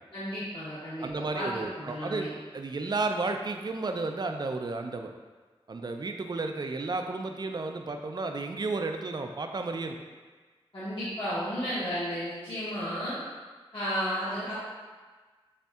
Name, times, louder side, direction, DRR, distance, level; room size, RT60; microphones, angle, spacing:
voice 1, 0.1-2.3 10.7-13.2 13.7-14.5, equal, 55° left, -12 dB, 1.1 m, -33 dB
voice 2, 1.0-5.1 5.7-10.0, right 3 dB, 45° right, 5 dB, 0.4 m, -32 dB
6.5 x 2.7 x 2.3 m, 1.4 s
wide cardioid pair, 70°, 10 cm